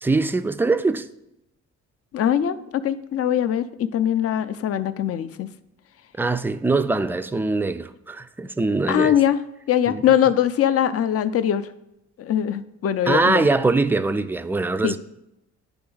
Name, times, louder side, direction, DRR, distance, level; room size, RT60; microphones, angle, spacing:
voice 1, 0.0-1.1 6.2-9.1 9.9-10.0 13.1-15.0, right 3 dB, 5° right, 0.3 m, -22 dB
voice 2, 2.1-2.6 2.8-5.5 8.9-9.4 9.7-11.7 12.2-13.5 14.8-15.0, left 10 dB, 50° left, 0.5 m, -21 dB
9.9 x 3.5 x 3.8 m
cardioid pair, 90°, 30 cm